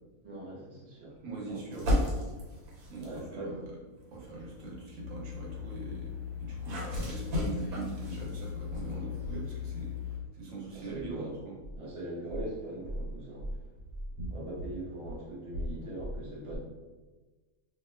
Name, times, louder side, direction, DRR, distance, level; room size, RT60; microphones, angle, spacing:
voice 1, 0.2-1.1 1.5-1.8 3.0-3.5 8.8-9.0 10.7-11.3 11.8-13.5 14.3-16.6, right 1 dB, 30° right, -6 dB, 0.6 m, -41 dB
voice 2, 1.2-1.8 2.9-3.7 4.1-9.9 10.3-11.6 14.2-14.3, right 2 dB, 70° right, -4 dB, 1.1 m, -41 dB
sound 1, 1.7-3.3 4.0-10.2, left 1 dB, 90° right, 1.3 m, -36 dB
sound 2, 5.0-10.2, left 11 dB, 80° left, 0.4 m, -40 dB
2.4 x 2.3 x 3.2 m, 1.2 s
omnidirectional pair, 1.5 m